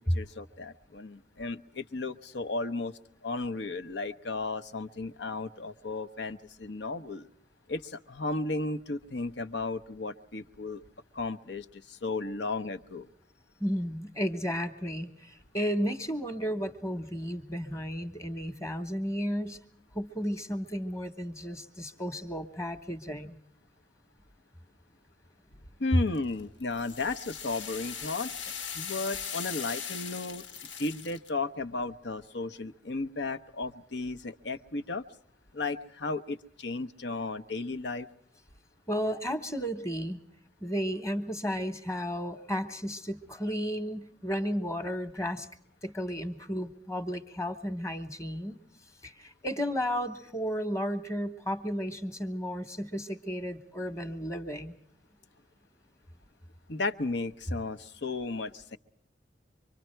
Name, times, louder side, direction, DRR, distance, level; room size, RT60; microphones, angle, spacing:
voice 1, 0.0-2.9 3.2-7.3 7.7-10.8 11.1-13.1 25.8-30.4 30.8-35.0 35.5-38.1 56.7-58.8, left 3 dB, 65° left, 8 dB, 0.8 m, -34 dB
voice 2, 13.6-19.6 19.9-23.4 38.9-40.2 40.6-45.5 45.8-48.6 49.0-54.8, equal, 15° left, 9 dB, 1.2 m, -33 dB
sound 1, 26.1-31.3, left 7 dB, 85° left, 1.4 m, -39 dB
25.5 x 23.5 x 4.5 m, 0.68 s
head